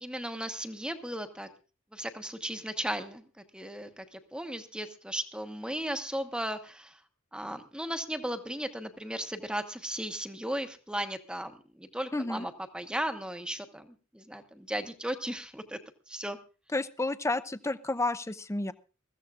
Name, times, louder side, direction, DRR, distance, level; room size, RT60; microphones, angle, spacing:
voice 1, 0.0-1.5 1.9-7.0 7.3-15.8 16.1-16.4, right 1 dB, 5° right, 7 dB, 1.1 m, -36 dB
voice 2, 12.1-12.5 16.7-18.7, left 2 dB, 15° left, 13 dB, 0.6 m, -31 dB
22.0 x 15.0 x 2.5 m, 0.35 s
head